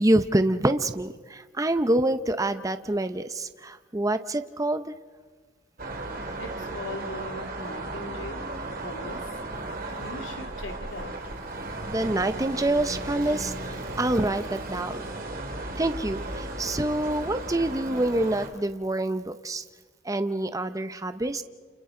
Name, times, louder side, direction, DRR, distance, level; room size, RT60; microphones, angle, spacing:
voice 1, 0.0-4.9 11.9-15.0 15.8-19.6 20.0-21.4, right 1 dB, 20° right, 10 dB, 0.7 m, -26 dB
sound 1, 5.8-18.5, right 2 dB, 50° right, 2.6 m, -35 dB
voice 2, 6.4-8.4 8.8-9.2 10.0-11.1, left 2 dB, 85° left, 3 dB, 2.5 m, -39 dB
29.5 x 28.5 x 3.8 m, 1.4 s
head